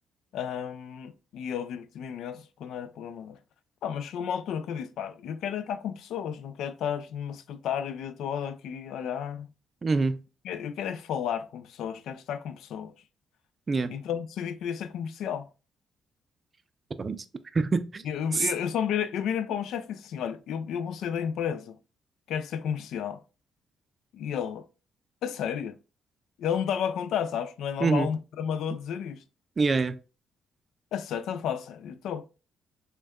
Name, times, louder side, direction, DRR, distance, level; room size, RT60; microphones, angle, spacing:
voice 1, 0.3-3.4 3.8-9.5 10.4-12.9 13.9-15.5 18.0-21.8 22.3-23.2 24.1-24.6 25.2-25.8 26.4-29.2 30.9-32.3, left 8 dB, 80° left, 0.3 m, -32 dB
voice 2, 9.8-10.2 13.7-13.9 17.0-17.2 17.5-18.0 18.3-18.5 27.8-28.1 29.6-30.0, right 4 dB, 35° right, 0.4 m, -25 dB
6.1 x 2.2 x 2.2 m
cardioid pair, 90°, 0 cm